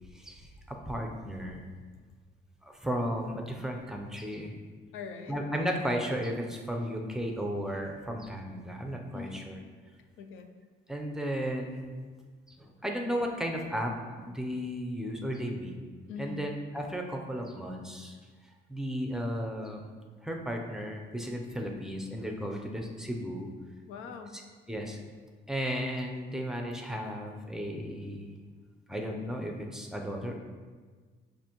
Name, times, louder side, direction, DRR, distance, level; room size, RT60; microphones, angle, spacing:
voice 1, 0.1-1.6 2.6-4.5 5.3-9.6 10.9-11.9 12.6-15.7 16.2-18.1 18.7-19.9 20.2-23.5 24.3-24.4 24.7-25.0 25.5-28.3 28.9-30.4, equal, 5° right, 1 dB, 0.5 m, -34 dB
voice 2, 4.9-5.4 9.1-9.5 10.2-10.5 16.1-16.4 23.9-24.4, left 5 dB, 85° left, 7 dB, 0.4 m, -42 dB
6.6 x 2.6 x 2.9 m, 1.5 s
cardioid pair, 90°, 20 cm